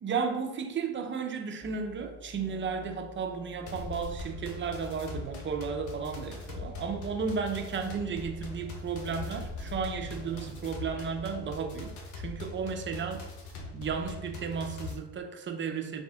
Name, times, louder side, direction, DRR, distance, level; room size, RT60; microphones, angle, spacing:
voice 1, 0.0-11.9 12.2-13.2 13.7-16.0, right 5 dB, 35° right, 5 dB, 0.7 m, -34 dB
sound 1, 1.6-12.0, left 3 dB, 10° left, 1.4 m, -48 dB
sound 2, 3.7-15.0, left 2 dB, 60° left, 1.0 m, -42 dB
4.2 x 2.5 x 3.6 m, 0.95 s
supercardioid pair, 70°, 33 cm